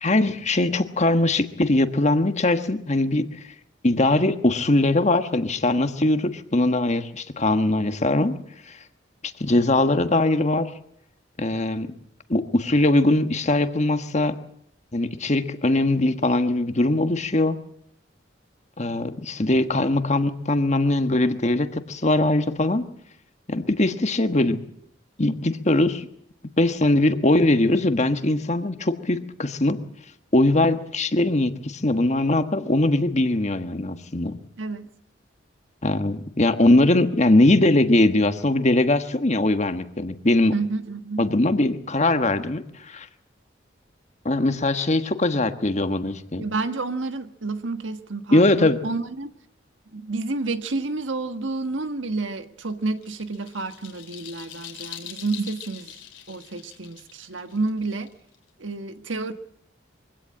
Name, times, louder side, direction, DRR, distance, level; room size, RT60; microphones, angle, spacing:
voice 1, 0.0-3.2 3.8-8.3 8.7-8.8 9.4-10.7 11.4-11.9 12.3-14.4 14.9-17.6 18.8-22.8 23.5-24.6 25.2-26.1 26.6-29.8 30.3-34.3 35.8-40.5 41.2-43.1 44.2-46.4 48.3-48.8, left 2 dB, 40° left, 1.4 m, -21 dB
voice 2, 34.6-34.9 40.5-41.3 46.4-49.3 49.9-55.9 56.3-58.1 58.6-59.3, right 3 dB, 85° right, 1.4 m, -30 dB
sound 1, 52.7-58.5, left 10 dB, 80° left, 3.2 m, -42 dB
23.5 x 16.5 x 8.8 m
head